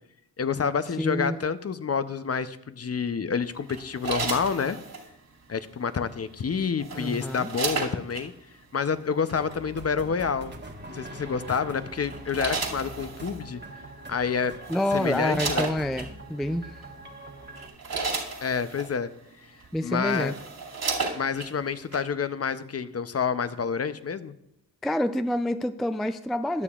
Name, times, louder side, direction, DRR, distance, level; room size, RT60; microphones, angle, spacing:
voice 1, 0.4-4.8 5.5-8.3 8.7-10.5 10.9-13.6 14.1-14.5 14.9-15.7 18.4-19.1 19.8-20.3 21.1-24.3, left 6 dB, 35° left, 12 dB, 0.6 m, -28 dB
voice 2, 1.0-1.4 6.9-7.5 14.7-16.7 19.7-20.4 24.8-26.6, left 1 dB, ahead, 10 dB, 0.3 m, -27 dB
sound 1, 3.7-5.1 6.4-8.3 9.3-9.5 11.2-11.5 12.0-13.4 14.2-14.3 14.6-16.1 16.8-17.0 17.4-18.9 19.6-19.7 20.0-21.5 21.9-22.0, right 4 dB, 60° right, 2.5 m, -33 dB
sound 2, 9.3-17.7, right 2 dB, 25° right, 1.2 m, -43 dB
20.0 x 6.8 x 2.4 m, 0.80 s
cardioid pair, 55°, 41 cm